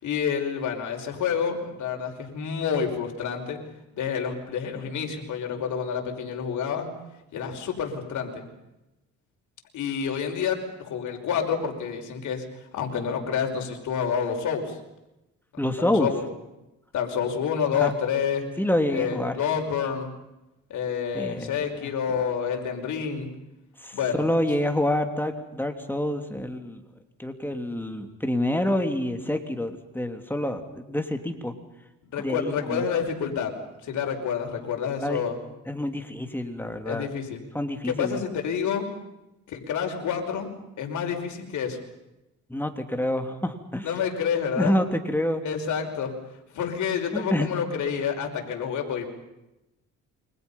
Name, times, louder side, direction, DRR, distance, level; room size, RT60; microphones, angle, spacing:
voice 1, 0.0-3.6 3.9-6.9 7.3-8.5 9.7-12.4 12.7-14.8 15.6-16.2 16.9-18.4 18.9-20.1 20.7-23.3 23.9-24.2 32.0-33.5 33.8-35.3 36.9-37.4 37.8-38.9 39.5-41.8 43.8-44.8 45.4-46.1 46.5-49.1, left 7 dB, 75° left, 3 dB, 5.5 m, -28 dB
voice 2, 15.6-16.1 17.7-17.9 18.6-19.3 21.1-22.2 23.8-26.8 27.2-31.5 32.2-32.8 35.0-35.2 35.7-37.1 37.5-38.2 42.5-43.9 44.6-45.4 47.1-47.5, left 1 dB, 5° left, 5 dB, 3.4 m, -27 dB
29.0 x 25.0 x 5.7 m, 0.94 s
cardioid pair, 90°, 30 cm